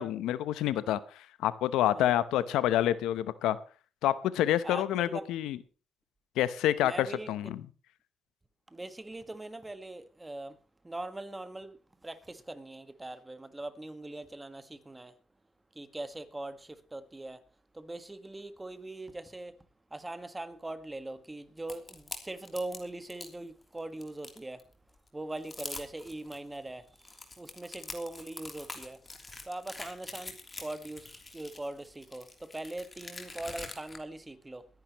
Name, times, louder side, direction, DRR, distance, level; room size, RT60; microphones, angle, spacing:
voice 1, 0.0-3.6 4.0-5.6 6.4-7.6, left 12 dB, 90° left, 0.8 m, -28 dB
voice 2, 4.6-5.3 6.8-7.3 8.7-10.6 10.8-15.2 15.7-17.4 17.7-19.6 19.9-24.6 25.1-29.1 29.4-34.7, right 2 dB, 15° right, 1.6 m, -41 dB
sound 1, 21.7-23.3 23.8-24.6 25.1-25.2 25.4-26.4 26.9-34.0, left 3 dB, 25° left, 3.2 m, -44 dB
23.0 x 10.5 x 3.1 m
cardioid pair, 90°, 0 cm